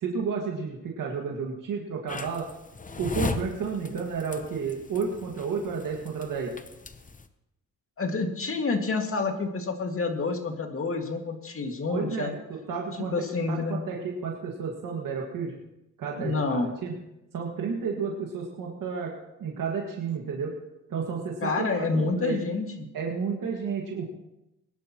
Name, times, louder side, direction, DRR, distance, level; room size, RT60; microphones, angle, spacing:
voice 1, 0.0-2.5 3.0-6.5 11.9-12.4 12.7-13.1 13.5-15.6 16.0-16.9 17.3-19.1 19.4-20.5 20.9-22.4 22.9-24.0, right 5 dB, 85° right, -1 dB, 2.1 m, -31 dB
sound 1, 2.1-7.3, left 4 dB, 25° left, 0.9 m, -37 dB
voice 2, 8.0-12.3 13.0-13.8 16.2-16.7 21.4-22.9, left 3 dB, 45° left, 3 dB, 2.1 m, -28 dB
21.5 x 11.5 x 3.1 m, 0.91 s
cardioid pair, 100°, 32 cm